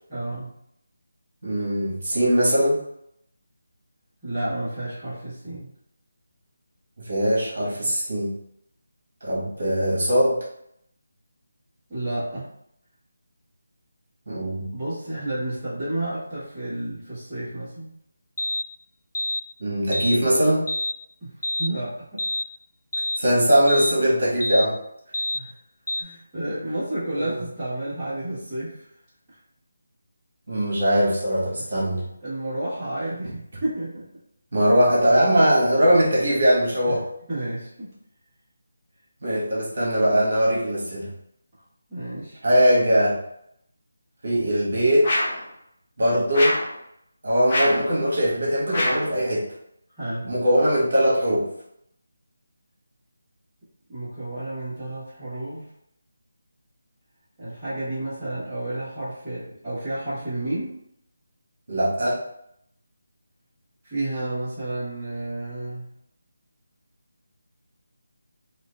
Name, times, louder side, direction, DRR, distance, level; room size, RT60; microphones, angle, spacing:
voice 1, 0.1-0.6 4.2-5.7 11.9-12.5 14.7-17.9 21.2-22.2 25.3-25.5 25.9-28.9 29.3-29.4 31.6-31.7 32.2-34.0 36.9-37.0 37.3-37.9 41.9-42.4 50.0-50.3 53.9-55.7 57.4-60.8 63.8-65.9, right 1 dB, 5° right, -17 dB, 1.3 m, -31 dB
voice 2, 1.4-2.8 7.0-8.3 9.2-10.4 14.3-14.7 19.6-20.7 23.2-24.8 27.1-27.4 30.5-32.1 34.5-37.0 39.2-41.1 42.4-43.2 44.2-45.1 46.0-46.6 47.2-49.5 50.2-51.5 61.7-62.2, equal, 50° right, -5 dB, 1.5 m, -21 dB
sound 1, 18.4-18.7 19.1-19.4 19.9-20.2 20.7-21.0 21.4-21.7 22.2-22.5 22.9-23.2 23.7-24.0 24.4-24.7 25.1-25.4 25.9-26.0, left 1 dB, 75° left, 0.3 m, -27 dB
sound 2, 45.0-45.5 46.3-46.7 47.5-47.9 48.7-49.1, left 1 dB, 30° left, 0.7 m, -24 dB
4.4 x 2.6 x 2.4 m, 0.74 s
figure-of-eight pair, 175°, 0 cm